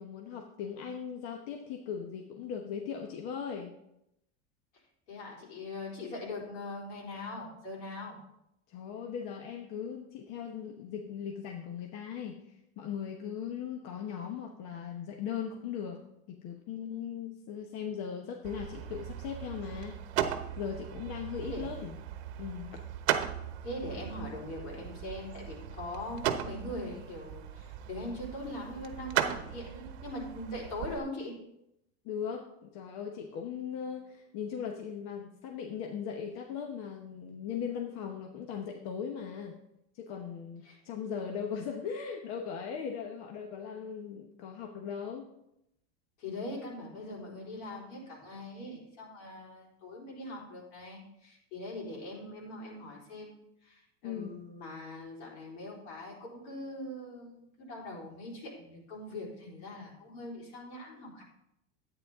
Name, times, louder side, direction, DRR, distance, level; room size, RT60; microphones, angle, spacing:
voice 1, 0.0-3.7 8.7-12.4 12.8-16.0 16.3-20.0 20.6-22.0 22.4-22.8 32.0-39.6 39.9-45.2 54.0-54.3, left 7 dB, 50° left, 3 dB, 1.1 m, -38 dB
voice 2, 5.1-8.2 21.4-21.9 23.6-31.4 40.6-40.8 46.2-61.2, left 1 dB, 80° left, -3 dB, 4.1 m, -42 dB
sound 1, 18.4-31.0, right 10 dB, 75° right, 1.0 m, -37 dB
10.5 x 8.9 x 3.6 m, 0.82 s
supercardioid pair, 140°, 34 cm